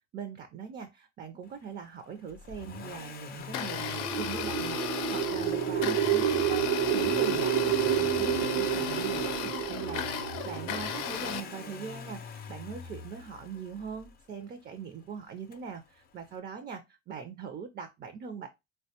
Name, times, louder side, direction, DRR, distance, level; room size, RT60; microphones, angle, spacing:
voice 1, 0.1-18.5, right 6 dB, 35° right, 0.4 m, -41 dB
Accelerating revving vroom, 2.3-14.2 15.5-15.6, left 5 dB, 30° left, 0.4 m, -45 dB
Domestic sounds home sounds, 3.4-11.4, left 9 dB, 85° left, 0.5 m, -35 dB
sound 1, 3.7-11.8, right 10 dB, 85° right, 0.7 m, -30 dB
3.4 x 2.2 x 2.8 m
cardioid pair, 120°, 30 cm